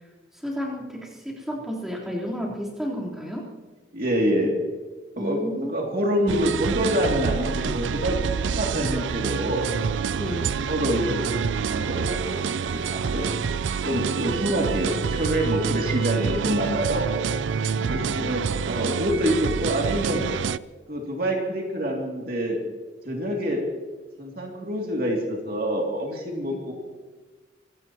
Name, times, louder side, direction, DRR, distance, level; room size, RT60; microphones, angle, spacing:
voice 1, 0.3-3.5 5.2-5.8 10.1-10.6 17.7-18.4 26.5-26.6, equal, ahead, -6 dB, 3.7 m, -32 dB
voice 2, 3.9-4.5 5.2-5.4 5.7-9.7 10.6-13.3 13.8-17.1 17.8-20.2 20.9-22.6 23.0-23.6 24.2-26.7, equal, 50° right, 0 dB, 2.6 m, -26 dB
sound 1, 6.3-20.6, right 6 dB, 75° right, 0.4 m, -27 dB
25.5 x 17.5 x 3.0 m, 1.3 s
head